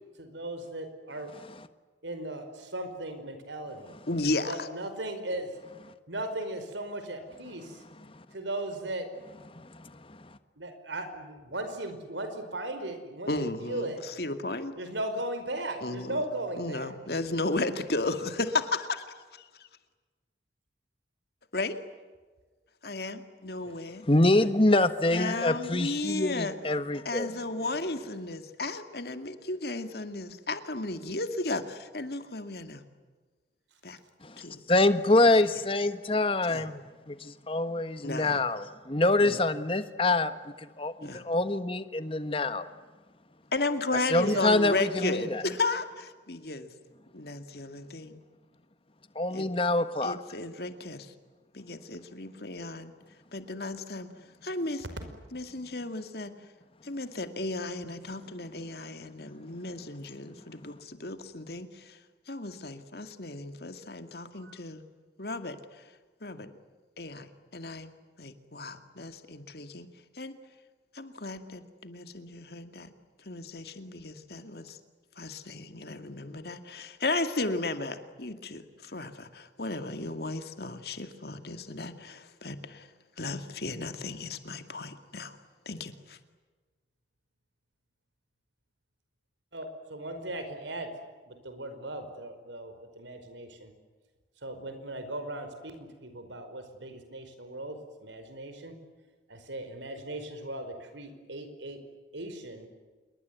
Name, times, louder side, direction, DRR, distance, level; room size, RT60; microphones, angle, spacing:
voice 1, 0.2-1.3 2.0-4.0 4.5-5.7 6.1-7.8 8.3-9.1 10.6-14.0 14.8-16.9 23.6-23.7 44.2-44.8 64.3-64.5 89.5-90.9 91.3-93.7 94.4-98.8 99.3-101.8 102.1-102.7, right 1 dB, 90° right, 8 dB, 5.1 m, -37 dB
voice 2, 4.1-4.7 13.3-14.7 15.8-16.2 16.6-19.0 19.6-19.7 21.5-21.8 22.8-24.1 24.3-24.5 25.1-26.5 27.1-32.8 33.8-34.0 34.4-34.6 36.5-36.6 38.0-38.4 39.2-39.4 41.0-41.2 43.5-46.7 47.1-48.2 49.3-49.5 50.0-51.1 51.5-52.9 53.3-54.1 54.4-54.8 55.3-56.3 56.8-62.0 62.3-64.8 65.2-65.6 66.2-66.5 67.0-67.9 68.2-69.9 70.2-70.4 70.9-72.9 73.3-74.8 75.2-82.9 83.2-85.4 85.7-86.2, left 2 dB, 60° left, 8 dB, 2.2 m, -34 dB
voice 3, 9.5-10.3 24.0-27.3 34.2-40.3 40.6-42.7 44.1-45.4 49.1-50.2, left 2 dB, 30° left, 11 dB, 1.4 m, -26 dB
27.5 x 22.5 x 9.6 m, 1.3 s
head